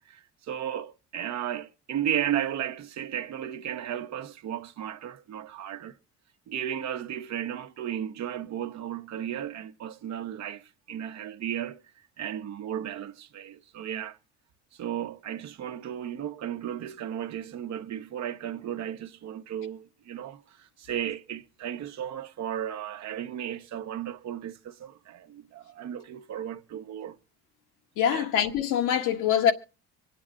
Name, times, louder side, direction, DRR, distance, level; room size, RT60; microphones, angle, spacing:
voice 1, 0.0-5.9 6.5-11.8 12.2-14.2 14.7-27.2 28.1-28.3, right 10 dB, 55° right, 1.1 m, -34 dB
voice 2, 28.0-29.5, left 9 dB, 70° left, 1.6 m, -24 dB
25.5 x 8.7 x 3.7 m
hypercardioid pair, 70°, 32 cm